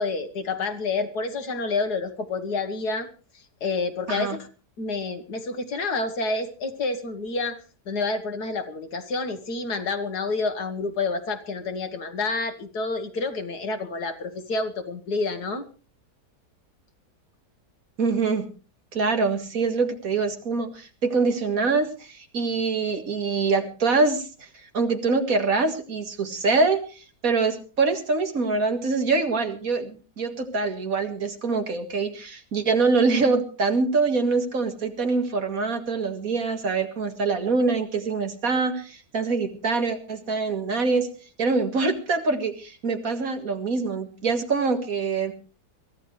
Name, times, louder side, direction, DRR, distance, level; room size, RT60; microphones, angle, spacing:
voice 1, 0.0-3.1 3.3-4.5 4.8-7.6 7.9-15.7, left 3 dB, 75° left, 9 dB, 2.0 m, -29 dB
voice 2, 18.0-18.5 18.9-24.3 24.7-41.1 41.4-45.3, right 4 dB, 60° right, 6 dB, 2.2 m, -24 dB
23.0 x 14.5 x 3.2 m, 0.36 s
omnidirectional pair, 1.7 m